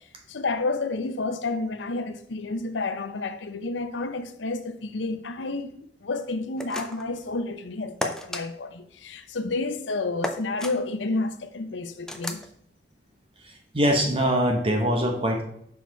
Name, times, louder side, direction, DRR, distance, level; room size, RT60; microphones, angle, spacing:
voice 1, 0.3-5.7 6.0-12.4, left 3 dB, 85° left, 0.7 m, -30 dB
sound 1, 6.6-7.1 8.0-8.4 10.2-10.7 12.1-12.5, left 1 dB, 5° left, 0.5 m, -32 dB
voice 2, 13.4-15.4, equal, 30° right, 1.0 m, -23 dB
6.3 x 4.8 x 4.6 m
head